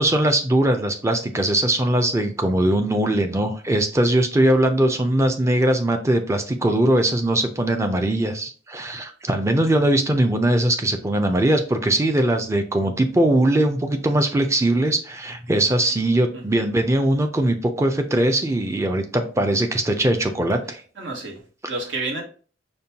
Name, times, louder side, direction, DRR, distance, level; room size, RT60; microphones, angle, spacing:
voice 1, 0.0-20.8 21.6-21.7, right 1 dB, 15° right, 6 dB, 0.4 m, -20 dB
voice 2, 21.0-22.2, right 3 dB, 80° right, 0 dB, 1.1 m, -30 dB
5.2 x 2.2 x 2.8 m, 0.39 s
head